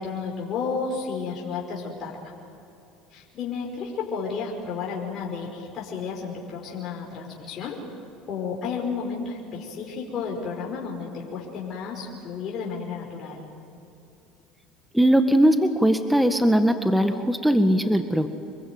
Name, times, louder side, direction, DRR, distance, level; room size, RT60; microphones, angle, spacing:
voice 1, 0.0-2.2 3.1-7.8 8.3-13.5, left 5 dB, 50° left, -2 dB, 5.4 m, -32 dB
voice 2, 14.9-18.3, equal, 5° right, 7 dB, 1.8 m, -20 dB
27.0 x 23.0 x 9.5 m, 2.7 s
hypercardioid pair, 75°, 0 cm